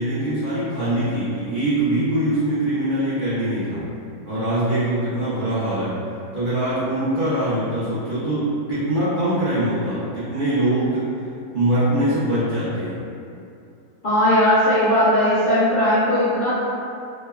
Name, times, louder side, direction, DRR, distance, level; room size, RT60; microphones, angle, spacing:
voice 1, 0.0-3.9 4.2-6.0 6.3-11.1 11.5-12.9, right 1 dB, 70° right, -12 dB, 0.4 m, -23 dB
voice 2, 14.0-16.5, left 1 dB, 75° left, -12 dB, 0.4 m, -18 dB
3.0 x 2.1 x 2.3 m, 2.6 s
omnidirectional pair, 1.6 m